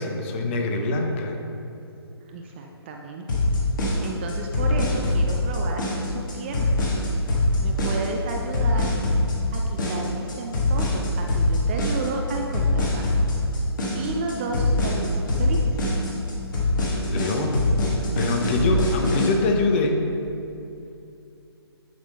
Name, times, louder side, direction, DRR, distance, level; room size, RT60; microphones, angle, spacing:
voice 1, 0.0-1.4 17.1-17.7 18.2-20.0, left 2 dB, 25° left, 3 dB, 0.7 m, -24 dB
voice 2, 2.2-3.3 4.0-6.7 7.6-8.9 9.5-13.3 13.9-15.8, right 3 dB, 25° right, 2 dB, 0.4 m, -32 dB
sound 1, 3.3-19.3, left 2 dB, 50° left, 1.5 m, -23 dB
10.5 x 3.6 x 4.1 m, 2.7 s
figure-of-eight pair, 140°, 14 cm